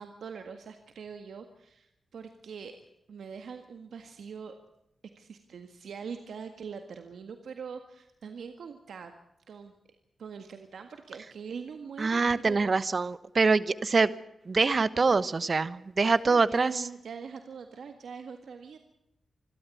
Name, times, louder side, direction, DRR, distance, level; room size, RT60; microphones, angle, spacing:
voice 1, 0.0-2.8 3.1-4.5 5.2-9.1 9.5-9.7 10.2-12.7 16.0-18.8, right 6 dB, 85° right, 7 dB, 1.8 m, -43 dB
voice 2, 12.0-14.1 14.5-16.8, right 4 dB, 50° right, 16 dB, 1.1 m, -25 dB
26.5 x 12.5 x 8.4 m, 0.83 s
cardioid pair, 75°, 0 cm